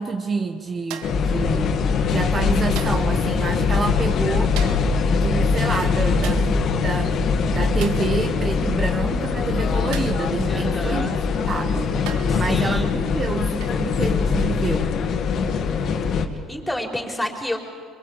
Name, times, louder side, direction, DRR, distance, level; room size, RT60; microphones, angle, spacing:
voice 1, 0.0-1.8 2.0-4.6 5.1-7.1 7.5-11.2 11.5-12.0 12.3-15.0, right 4 dB, 35° right, 6 dB, 1.3 m, -28 dB
sound 1, 0.9-1.3 2.8-3.2 4.6-5.0 6.2-6.6 7.8-8.1 9.9-10.3 11.3-11.4 12.1-12.4 13.6-13.9 15.5-15.7, right 8 dB, 80° right, 1.9 m, -37 dB
sound 2, 1.0-16.3, left 5 dB, 55° left, 2.2 m, -22 dB
voice 2, 10.5-11.1 12.3-12.9 16.5-17.6, left 1 dB, 5° left, 1 dB, 4.6 m, -29 dB
25.5 x 22.5 x 8.3 m, 2.1 s
supercardioid pair, 90°, 0 cm